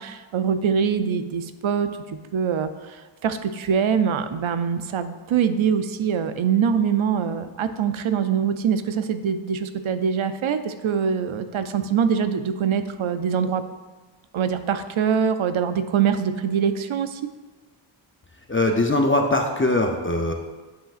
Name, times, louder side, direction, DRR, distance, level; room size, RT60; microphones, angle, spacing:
voice 1, 0.0-13.6 14.3-17.2, right 7 dB, 80° right, 10 dB, 0.6 m, -24 dB
voice 2, 18.5-20.3, left 2 dB, 25° left, 2 dB, 0.6 m, -21 dB
10.0 x 5.6 x 2.4 m, 1.3 s
wide cardioid pair, 90°, 48 cm